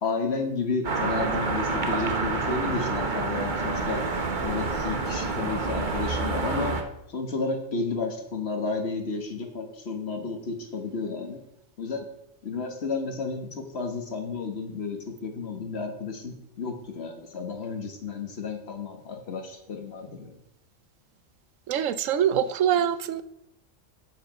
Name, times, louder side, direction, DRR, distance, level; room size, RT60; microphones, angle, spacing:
voice 1, 0.0-4.0 4.4-6.8 7.1-11.4 11.8-12.0 12.4-20.3, left 4 dB, 55° left, 4 dB, 1.4 m, -32 dB
sound 1, 0.8-6.8, right 3 dB, 40° right, 1.0 m, -28 dB
voice 2, 21.7-23.2, right 9 dB, 80° right, 13 dB, 1.0 m, -24 dB
8.1 x 7.6 x 5.2 m, 0.79 s
omnidirectional pair, 1.3 m